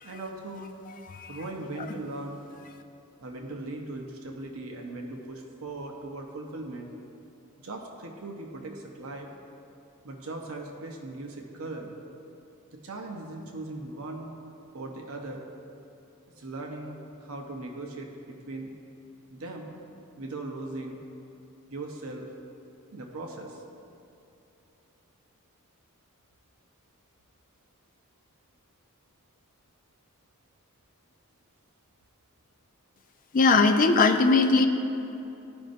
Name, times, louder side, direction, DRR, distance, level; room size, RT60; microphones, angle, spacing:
voice 1, 0.0-0.7 1.3-2.4 3.2-6.9 7.6-9.3 10.0-11.9 12.7-14.3 14.7-15.5 16.4-18.7 19.3-19.7 20.2-21.0 21.7-22.3 22.9-23.6, right 2 dB, 65° right, 1 dB, 0.7 m, -39 dB
voice 2, 1.1-1.4 33.3-34.7, left 3 dB, 40° left, 6 dB, 0.4 m, -20 dB
13.5 x 5.2 x 2.5 m, 2.9 s
head